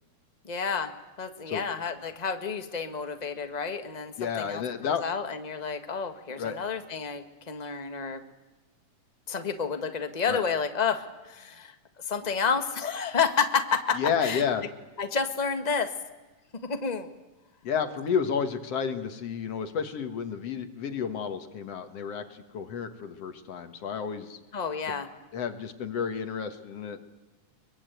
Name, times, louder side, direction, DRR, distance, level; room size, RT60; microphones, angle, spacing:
voice 1, 0.4-0.9 1.2-8.2 9.3-11.7 12.0-14.4 15.0-15.9 16.6-17.1 24.5-25.1, left 6 dB, 25° left, 7 dB, 0.8 m, -30 dB
voice 2, 4.2-5.0 6.4-6.6 10.3-10.4 14.0-14.6 17.6-24.4 25.3-27.0, left 7 dB, 55° left, 8 dB, 2.3 m, -31 dB
24.0 x 23.5 x 9.1 m, 1.2 s
omnidirectional pair, 3.6 m